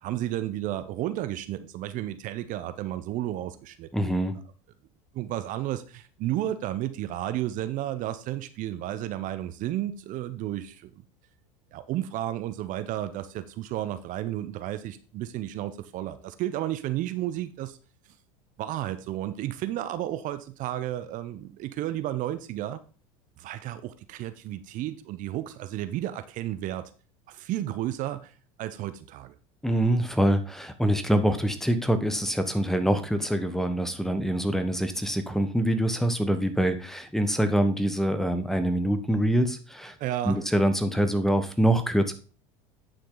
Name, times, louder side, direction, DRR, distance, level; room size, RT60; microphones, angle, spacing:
voice 1, 0.0-4.1 5.1-10.9 11.7-17.8 18.6-22.8 23.4-26.9 27.3-28.3 28.6-29.3 40.0-40.4, right 13 dB, 50° right, 12 dB, 0.8 m, -32 dB
voice 2, 3.9-4.3 29.6-39.9 40.2-42.1, right 1 dB, ahead, 9 dB, 1.1 m, -25 dB
9.8 x 5.9 x 3.9 m, 0.38 s
hypercardioid pair, 85°, 17 cm